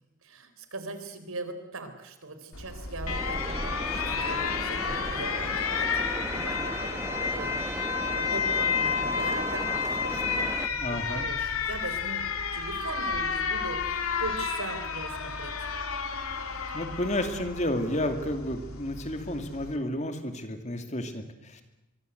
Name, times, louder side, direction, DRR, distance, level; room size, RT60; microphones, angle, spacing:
voice 1, 0.2-12.3 12.5-15.7, right 3 dB, 80° right, 9 dB, 3.9 m, -40 dB
Alarm, 2.5-19.8, left 5 dB, 90° left, 2.9 m, -31 dB
sound 1, 3.1-10.7, right 1 dB, 15° right, 1.0 m, -37 dB
voice 2, 10.8-11.3 16.4-21.6, left 1 dB, 35° left, 7 dB, 2.5 m, -31 dB
24.5 x 23.0 x 8.1 m, 0.89 s
head